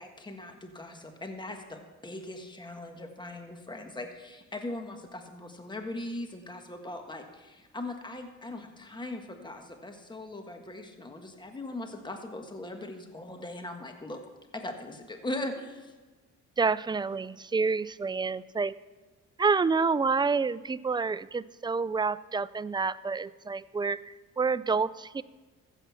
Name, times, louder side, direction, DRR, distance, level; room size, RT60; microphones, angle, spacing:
voice 1, 0.0-14.2 14.5-15.9, left 1 dB, 15° left, 5 dB, 1.5 m, -40 dB
voice 2, 16.6-18.7 19.4-25.2, right 4 dB, 15° right, 16 dB, 0.4 m, -28 dB
15.0 x 8.1 x 5.7 m, 1.3 s
cardioid pair, 90°, 30 cm